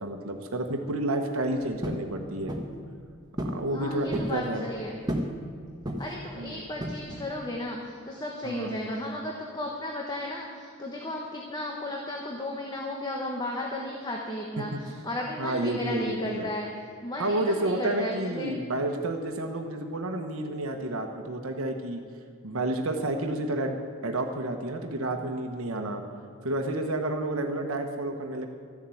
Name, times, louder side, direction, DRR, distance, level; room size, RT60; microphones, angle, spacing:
voice 1, 0.0-2.5 3.4-4.7 6.3-6.6 8.4-9.0 14.6-14.8 15.4-16.5 17.2-22.0 22.4-26.0 26.4-28.5, right 1 dB, 85° right, 4 dB, 1.2 m, -30 dB
sound 1, 1.8-2.1 2.5-2.8 3.4-3.6 3.9-4.4 5.1-5.4 5.8-6.2 6.8-7.3, equal, 20° right, 1.3 m, -32 dB
voice 2, 3.7-5.0 6.0-16.7 17.0-18.5, left 1 dB, 20° left, -1 dB, 1.3 m, -34 dB
14.0 x 7.4 x 9.1 m, 2.3 s
head